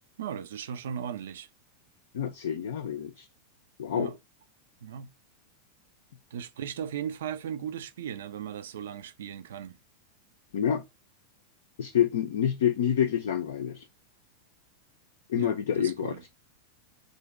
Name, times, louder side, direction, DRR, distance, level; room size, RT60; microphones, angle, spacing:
voice 1, 0.2-1.5 3.9-4.1 4.8-5.1 6.3-9.8 15.3-16.2, right 9 dB, 60° right, 0.5 m, -37 dB
voice 2, 2.1-3.3 3.8-4.1 10.5-10.8 11.8-13.8 15.3-16.3, left 9 dB, 60° left, 0.5 m, -27 dB
3.9 x 2.9 x 3.4 m
figure-of-eight pair, 90°, 0 cm